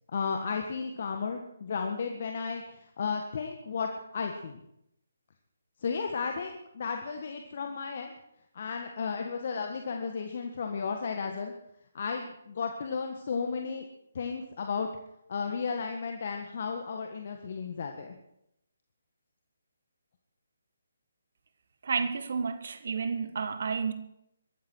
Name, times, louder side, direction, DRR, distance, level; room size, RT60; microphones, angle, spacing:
voice 1, 0.1-4.6 5.8-8.1 8.5-11.5 11.9-13.8 14.1-14.9 15.3-18.2, left 5 dB, 50° left, 1.6 m, -34 dB
voice 2, 21.8-23.9, right 5 dB, 55° right, 1.7 m, -31 dB
22.5 x 13.0 x 4.6 m
figure-of-eight pair, 140°, 0 cm